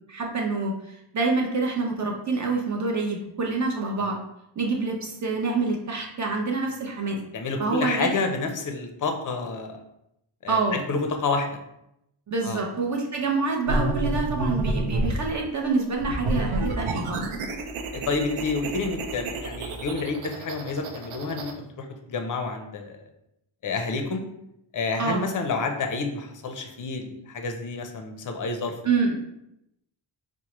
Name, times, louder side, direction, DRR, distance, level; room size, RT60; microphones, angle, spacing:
voice 1, 0.1-4.2 4.6-7.2 7.6-8.1 10.5-10.8 12.3-17.2 25.0-25.3 28.8-29.1, right 3 dB, 35° right, 0 dB, 0.7 m, -26 dB
voice 2, 7.3-9.8 10.4-11.6 12.4-12.6 17.9-23.0 23.6-24.2 24.7-28.7, left 4 dB, 40° left, 5 dB, 0.5 m, -29 dB
sound 1, 13.7-15.3 16.0-21.5, right 2 dB, 85° right, 0.6 m, -29 dB
4.4 x 2.1 x 2.9 m, 0.82 s
wide cardioid pair, 125°, 49 cm